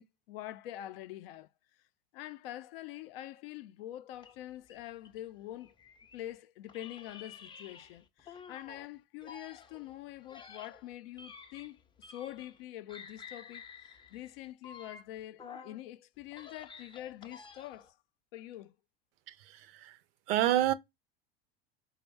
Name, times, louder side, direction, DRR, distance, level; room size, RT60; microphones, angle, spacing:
voice 1, 0.0-1.5 2.1-5.7 6.1-18.0 18.3-18.7, left 14 dB, 70° left, 0.4 m, -45 dB
sound 1, 4.2-6.3 6.7-8.9 9.2-12.6 12.9-15.8 16.2-17.9, left 6 dB, 15° left, 0.5 m, -51 dB
voice 2, 19.3-20.0 20.3-20.7, right 13 dB, 70° right, 0.5 m, -29 dB
4.4 x 2.1 x 3.3 m
hypercardioid pair, 95°, 30 cm